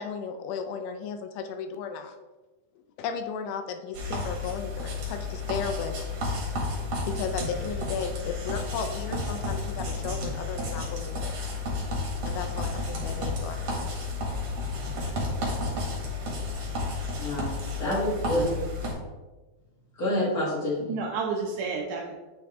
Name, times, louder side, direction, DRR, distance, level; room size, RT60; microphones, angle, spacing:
voice 1, 0.0-2.1 3.0-6.1 7.1-11.3 12.2-14.1, left 6 dB, 85° left, 6 dB, 2.5 m, -35 dB
sound 1, 3.9-18.9, left 2 dB, 50° right, 2.1 m, -32 dB
voice 2, 17.2-18.5 20.0-21.0, left 1 dB, 60° left, -7 dB, 0.9 m, -28 dB
voice 3, 20.9-22.2, right 4 dB, 85° right, 0 dB, 1.7 m, -31 dB
8.8 x 3.6 x 3.5 m, 1.2 s
omnidirectional pair, 4.3 m